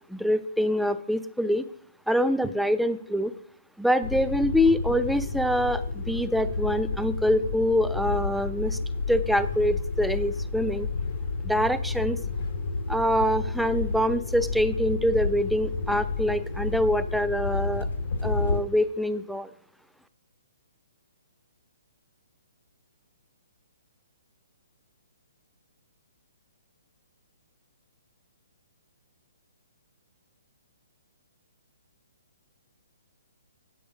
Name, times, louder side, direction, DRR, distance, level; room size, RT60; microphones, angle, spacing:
voice 1, 0.1-1.6 2.1-3.3 3.8-8.8 9.1-10.9 11.4-12.2 12.9-17.9 18.2-19.5, equal, ahead, 11 dB, 0.4 m, -25 dB
sound 1, 4.0-18.6, left 4 dB, 70° left, 0.9 m, -31 dB
8.6 x 7.9 x 5.0 m, 0.64 s
hypercardioid pair, 150°, 0 cm